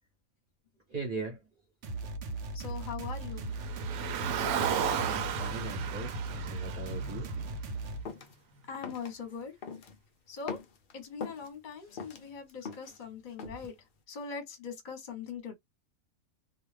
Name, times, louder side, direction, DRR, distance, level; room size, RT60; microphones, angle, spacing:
voice 1, 0.9-1.4 4.7-4.8 5.0-7.3, right 3 dB, 40° right, 1.0 m, -39 dB
sound 1, 1.8-8.0, right 2 dB, 65° right, 0.9 m, -38 dB
voice 2, 2.5-3.5 8.7-9.6 10.3-10.6 10.9-13.7 14.1-15.5, left 6 dB, 40° left, 0.9 m, -41 dB
Car, 3.5-7.9, right 8 dB, 85° right, 1.1 m, -34 dB
sound 2, 8.0-8.3 8.8-9.1 9.6-10.0 10.4-11.5 11.9-13.0 13.4-13.7, left 5 dB, 75° left, 0.4 m, -41 dB
2.5 x 2.3 x 3.2 m
omnidirectional pair, 1.5 m